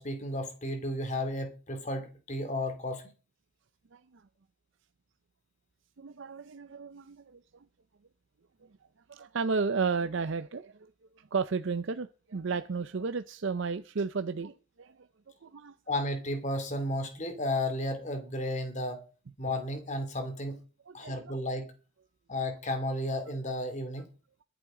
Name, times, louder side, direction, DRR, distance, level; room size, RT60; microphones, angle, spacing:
voice 1, 0.0-3.1 15.9-19.0 19.4-20.6 20.9-21.7 22.3-24.1, left 1 dB, 35° left, 2.4 m, -33 dB
voice 2, 6.0-7.4 9.1-10.9 11.3-14.9 15.4-15.7 20.9-21.3, right 5 dB, 60° right, 0.5 m, -33 dB
22.5 x 7.8 x 3.8 m
head